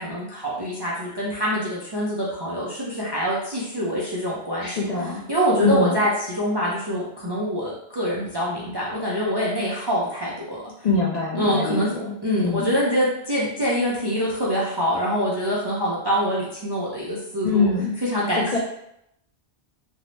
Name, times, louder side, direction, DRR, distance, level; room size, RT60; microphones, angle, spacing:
voice 1, 0.0-4.8 5.3-10.6 11.3-11.9 12.2-17.7 18.0-18.6, equal, 40° right, -7 dB, 0.4 m, -25 dB
voice 2, 4.6-5.2 5.6-6.0 10.8-12.1 12.4-12.7 17.4-18.0 18.3-18.6, left 3 dB, 55° left, -4 dB, 0.5 m, -23 dB
2.6 x 2.0 x 3.1 m, 0.77 s
omnidirectional pair, 1.1 m